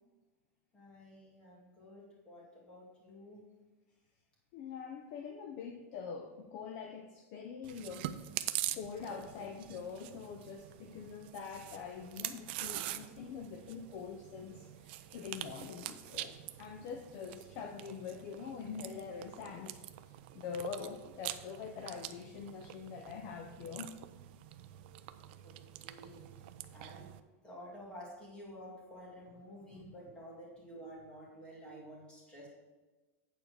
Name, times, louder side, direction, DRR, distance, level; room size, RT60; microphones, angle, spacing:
voice 1, 0.7-3.4 25.4-25.6 25.8-26.3 26.7-27.1 27.4-32.5, equal, 10° left, -4 dB, 2.2 m, -51 dB
voice 2, 4.5-8.1 8.7-19.8 20.3-23.9 29.7-29.9, left 6 dB, 35° left, 5 dB, 0.5 m, -44 dB
Chewing mastication, 7.6-27.2, right 14 dB, 45° right, 0.4 m, -45 dB
8.7 x 4.5 x 6.6 m, 1.2 s
supercardioid pair, 175°, 8 cm